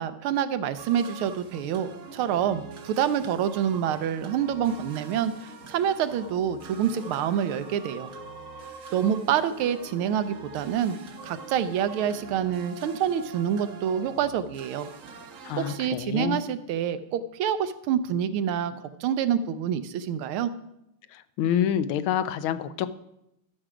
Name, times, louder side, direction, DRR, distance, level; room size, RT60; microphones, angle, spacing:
voice 1, 0.0-8.1 8.9-11.0 11.2-14.9 15.6-20.5, right 9 dB, 85° right, 12 dB, 1.5 m, -27 dB
sound 1, 0.8-15.8, right 4 dB, 55° right, 0.9 m, -44 dB
Wind instrument woodwind instrument, 6.4-12.2, left 5 dB, 55° left, 1.7 m, -51 dB
voice 2, 15.4-16.4 21.1-22.9, left 9 dB, 80° left, 13 dB, 1.4 m, -27 dB
12.5 x 6.3 x 4.9 m, 0.84 s
omnidirectional pair, 2.3 m